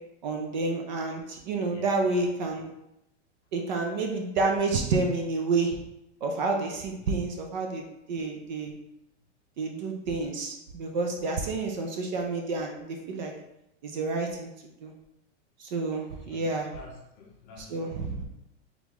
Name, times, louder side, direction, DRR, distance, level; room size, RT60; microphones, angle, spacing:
voice 1, 0.2-2.7 3.5-5.8 6.2-8.7 9.6-13.3 13.8-14.5 14.8-14.9 15.6-16.7 17.6-18.2, right 3 dB, 40° right, 2 dB, 0.5 m, -29 dB
voice 2, 1.7-2.3 7.0-7.1 16.2-17.9, left 2 dB, 25° left, -1 dB, 0.6 m, -49 dB
4.0 x 3.5 x 2.9 m, 0.86 s
supercardioid pair, 165°, 36 cm